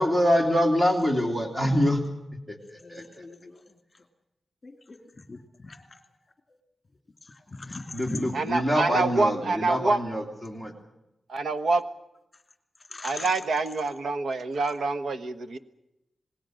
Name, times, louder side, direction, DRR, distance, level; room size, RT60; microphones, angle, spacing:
voice 1, 0.0-2.0 2.5-3.0 7.9-10.7, equal, 10° right, 4 dB, 2.9 m, -25 dB
voice 2, 2.8-3.3 4.6-5.0 5.3-5.9 7.5-8.3 12.9-13.3, left 3 dB, 25° left, 6 dB, 2.6 m, -39 dB
voice 3, 8.3-10.0 11.3-11.8 13.0-15.6, right 3 dB, 65° right, 11 dB, 1.3 m, -26 dB
27.5 x 20.0 x 6.5 m, 0.89 s
wide cardioid pair, 170°, 0 cm